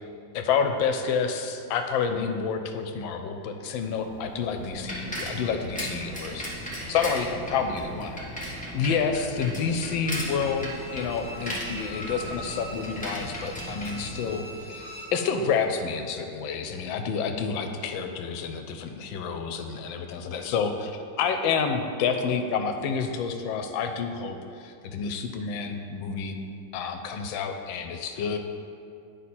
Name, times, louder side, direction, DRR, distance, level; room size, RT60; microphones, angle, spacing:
voice 1, 0.3-26.4 26.7-28.4, left 6 dB, 80° left, 6 dB, 1.3 m, -29 dB
Bicycle, 3.9-14.8, equal, 5° left, 1.1 m, -37 dB
Bowed string instrument, 10.0-15.2 15.6-15.7, equal, 25° right, 1.1 m, -42 dB
9.2 x 5.5 x 4.2 m, 2.4 s
omnidirectional pair, 2.1 m